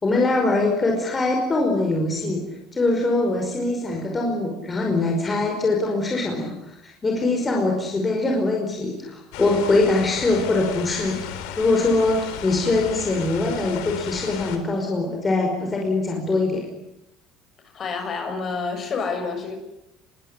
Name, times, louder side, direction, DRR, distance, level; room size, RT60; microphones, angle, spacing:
voice 1, 0.0-2.4 2.7-11.2 11.6-16.6, left 2 dB, 20° left, 1 dB, 5.3 m, -22 dB
sound 1, 9.3-14.6, left 9 dB, 90° left, 4.6 m, -35 dB
voice 2, 17.7-19.6, left 4 dB, 35° left, 7 dB, 6.8 m, -29 dB
26.0 x 23.0 x 9.8 m, 0.85 s
cardioid pair, 140°, 0 cm